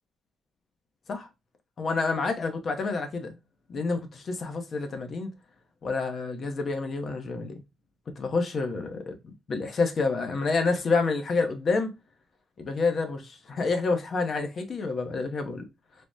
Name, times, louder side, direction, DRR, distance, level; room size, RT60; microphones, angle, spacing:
voice 1, 1.8-3.4 3.7-5.3 5.8-7.6 8.2-9.1 9.5-11.9 12.6-15.6, left 4 dB, 50° left, 0.6 m, -28 dB
3.3 x 2.0 x 2.5 m
cardioid pair, 90°, 0 cm